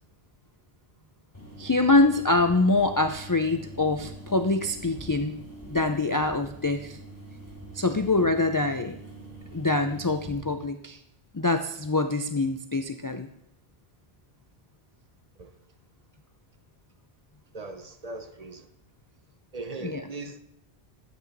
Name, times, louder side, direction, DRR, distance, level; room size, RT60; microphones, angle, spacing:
sound 1, 1.3-10.3, right 2 dB, 15° left, 2.6 m, -44 dB
voice 1, 1.6-5.4 5.7-7.0 7.7-9.0 9.5-11.0 11.3-13.3 19.8-20.1, left 2 dB, 35° left, 0.3 m, -24 dB
voice 2, 17.5-18.7 19.5-20.4, right 3 dB, 40° right, 0.8 m, -39 dB
12.0 x 8.1 x 4.0 m
omnidirectional pair, 1.1 m